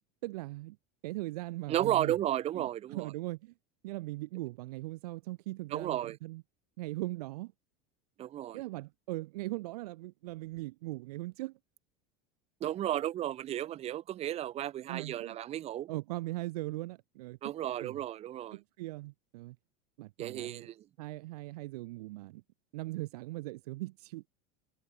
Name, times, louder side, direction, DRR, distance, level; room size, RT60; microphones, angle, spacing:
voice 1, 0.2-0.8 1.0-2.1 2.5-3.5 3.8-6.4 6.8-7.5 8.5-11.6 14.9-15.4 15.9-17.5 17.8-18.0 18.5-19.6 20.0-20.7 21.0-22.4 22.7-24.2, right 19 dB, 85° right, 1.4 m, -40 dB
voice 2, 1.7-3.1 5.7-6.2 8.2-8.6 12.6-15.9 17.4-18.6 20.2-20.9, right 12 dB, 35° right, 1.6 m, -33 dB
supercardioid pair, 150°, 19 cm